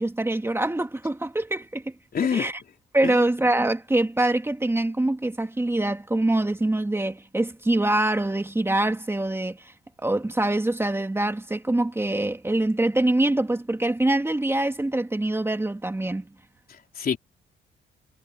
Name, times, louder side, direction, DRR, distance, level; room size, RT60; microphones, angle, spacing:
voice 1, 0.0-1.9 2.3-2.5 2.9-9.7 10.0-16.3, right 1 dB, 10° right, 2.2 m, -24 dB
voice 2, 2.1-2.5 3.0-3.2 16.7-17.2, left 7 dB, 50° left, 3.6 m, -27 dB
cardioid pair, 90°, 20 cm